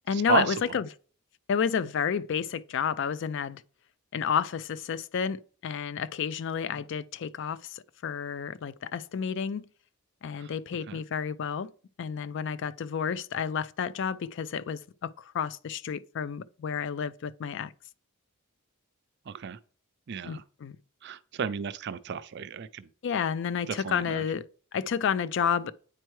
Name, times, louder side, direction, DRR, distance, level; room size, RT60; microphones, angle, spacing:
voice 1, 0.1-0.9 1.5-3.6 4.1-9.6 10.2-11.7 12.0-17.7 20.2-20.8 23.0-25.7, left 7 dB, 55° left, 0.4 m, -31 dB
voice 2, 19.3-19.6 20.1-20.4 21.0-22.9 23.8-24.2, right 6 dB, 50° right, 0.4 m, -32 dB
8.9 x 4.5 x 3.1 m
head